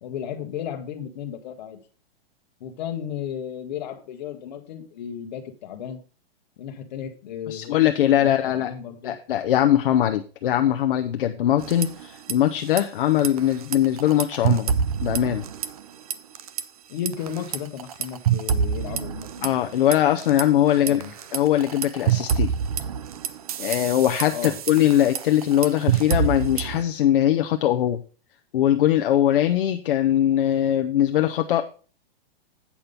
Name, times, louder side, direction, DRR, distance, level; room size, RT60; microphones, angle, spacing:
voice 1, 0.0-1.8 2.6-6.0 6.6-7.7 8.0-9.1 16.9-19.5 20.8-21.1 24.3-24.5, left 9 dB, 45° left, 6 dB, 1.4 m, -34 dB
voice 2, 7.5-8.7 9.0-14.7 15.0-15.4 19.4-21.0 21.3-22.5 23.6-28.0 28.5-31.7, left 11 dB, 60° left, 6 dB, 0.7 m, -21 dB
sound 1, 11.6-12.3 12.6-12.8 13.2-16.6 17.1-20.4 20.9-26.8, right 8 dB, 40° right, 0.5 m, -26 dB
8.5 x 5.9 x 5.3 m, 0.38 s
supercardioid pair, 180°, 30 cm